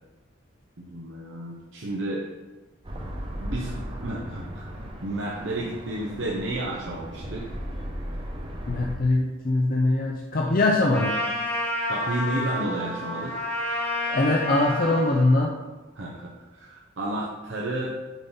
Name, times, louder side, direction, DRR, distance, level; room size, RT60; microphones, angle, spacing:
voice 1, 0.8-2.2 3.4-7.5 11.9-13.4 16.0-18.0, right 1 dB, 70° right, -3 dB, 0.8 m, -32 dB
sound 1, 2.8-8.9, equal, 25° right, 0.8 m, -36 dB
voice 2, 8.7-11.1 14.1-15.5, left 2 dB, 45° left, 0 dB, 0.6 m, -22 dB
Trumpet, 10.9-15.2, left 1 dB, 10° left, 1.9 m, -30 dB
7.2 x 3.9 x 5.5 m, 1.2 s
head